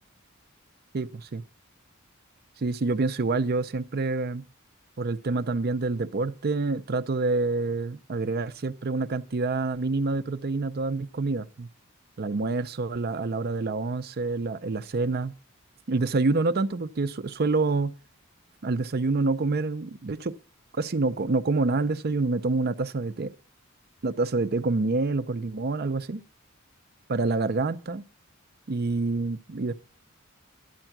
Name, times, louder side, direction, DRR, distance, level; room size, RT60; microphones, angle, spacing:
voice 1, 0.9-1.4 2.6-4.4 5.0-11.7 12.2-15.3 15.9-17.9 18.6-20.3 20.7-23.3 24.0-26.2 27.1-28.0 28.7-29.7, right 3 dB, 45° right, 0.6 m, -27 dB
12.0 x 9.0 x 5.9 m
head